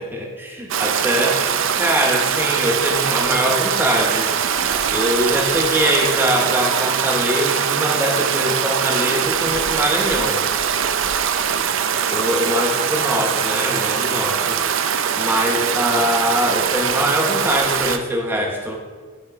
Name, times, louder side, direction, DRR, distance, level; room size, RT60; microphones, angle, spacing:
voice 1, 0.0-1.4 1.8-4.3 4.6-10.5 12.1-14.6 15.1-18.8, equal, 10° right, 0 dB, 0.8 m, -22 dB
Stream, 0.7-18.0, right 7 dB, 65° right, 0.4 m, -21 dB
9.7 x 4.4 x 4.4 m, 1.5 s
head